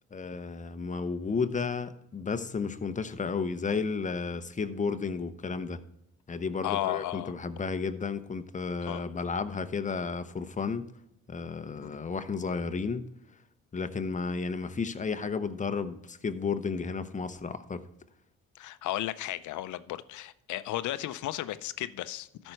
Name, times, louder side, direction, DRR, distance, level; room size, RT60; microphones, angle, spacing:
voice 1, 0.1-5.8 6.3-10.9 11.3-13.1 13.7-17.8, left 5 dB, 25° left, 0.7 m, -32 dB
voice 2, 6.6-7.3 8.8-9.1 11.8-12.0 18.5-22.5, left 14 dB, 75° left, 0.6 m, -34 dB
13.0 x 5.4 x 4.6 m
cardioid pair, 90°, 30 cm